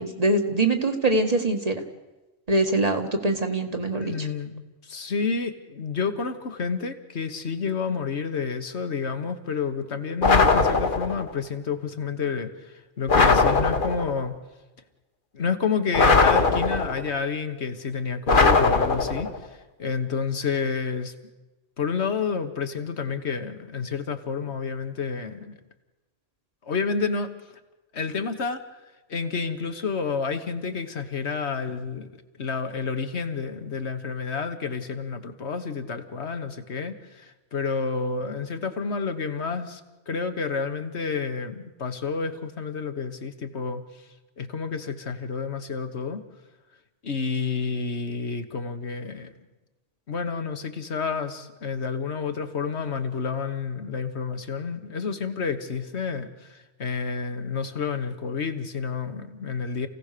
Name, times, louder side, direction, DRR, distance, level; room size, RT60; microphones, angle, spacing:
voice 1, 0.0-1.8 2.5-4.3, right 2 dB, 30° right, 4 dB, 1.7 m, -23 dB
voice 2, 3.9-14.4 15.3-21.1 21.8-25.6 26.6-27.3 27.9-28.6 29.1-32.1 32.4-39.8 40.1-43.8 44.4-46.2 47.0-49.3 50.1-59.9, left 5 dB, 65° left, 8 dB, 1.6 m, -29 dB
sound 1, 10.2-11.3 13.1-14.2 15.9-17.1 18.3-19.4, left 3 dB, 45° left, 1.3 m, -20 dB
28.0 x 17.0 x 6.8 m, 1.1 s
omnidirectional pair, 1.2 m